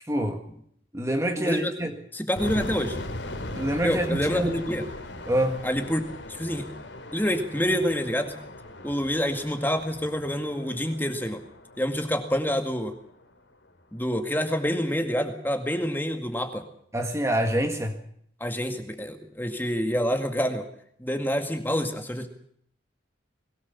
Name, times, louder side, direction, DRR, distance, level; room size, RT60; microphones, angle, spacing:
voice 1, 0.1-0.4 0.9-1.9 3.5-4.6 5.3-5.6 16.9-18.0, right 1 dB, 15° right, 1.8 m, -26 dB
voice 2, 1.4-1.7 2.1-3.0 3.8-4.9 5.6-6.0 6.3-6.7 7.1-8.3 8.8-11.4 11.8-12.9 13.9-16.6 18.4-20.7 21.0-22.3, equal, 10° left, 2.0 m, -27 dB
sound 1, 2.4-13.2, left 1 dB, 75° left, 3.0 m, -39 dB
22.0 x 17.5 x 7.2 m
head